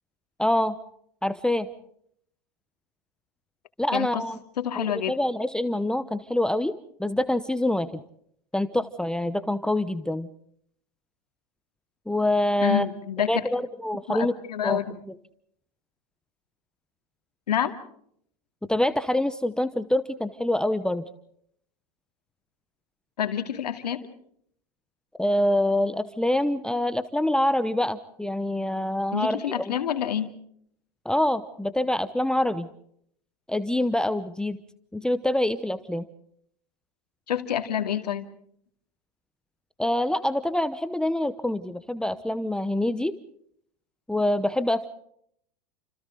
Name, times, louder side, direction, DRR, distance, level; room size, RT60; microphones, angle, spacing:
voice 1, 0.4-0.7 1.2-1.7 3.8-4.4 4.8-6.7 7.0-7.9 8.5-10.3 12.1-12.9 13.3-14.3 14.6-14.8 18.7-21.0 25.2-29.7 31.0-32.7 33.5-34.6 34.9-36.0 39.8-43.1 44.1-44.9, left 1 dB, 5° left, 11 dB, 0.9 m, -25 dB
voice 2, 3.9-4.2 4.6-5.1 12.6-13.4 14.1-14.9 17.5-17.7 23.2-24.1 29.1-30.3 37.3-38.2, left 9 dB, 85° left, 6 dB, 2.4 m, -27 dB
29.5 x 27.0 x 3.9 m, 0.68 s
hypercardioid pair, 100°, 20 cm